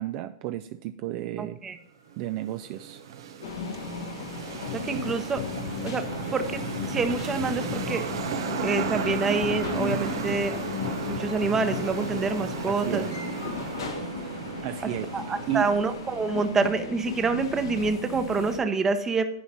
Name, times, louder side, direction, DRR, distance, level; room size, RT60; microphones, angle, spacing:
voice 1, 0.0-1.6 2.2-3.0 4.9-5.0 12.7-13.1 14.6-15.1 15.5-15.7, right 14 dB, 50° right, 10 dB, 0.4 m, -32 dB
voice 2, 1.4-1.8 4.7-5.4 5.8-6.0 6.3-8.1 8.6-10.6 11.1-13.1 15.1-19.2, right 4 dB, 20° right, 9 dB, 0.8 m, -27 dB
sound 1, 2.1-16.6, right 7 dB, 80° right, 0.9 m, -35 dB
sound 2, 3.4-18.6, left 5 dB, 85° left, 1.5 m, -37 dB
sound 3, 4.6-12.6, left 10 dB, 60° left, 0.6 m, -36 dB
10.5 x 4.7 x 4.1 m, 0.85 s
hypercardioid pair, 125°, 2 cm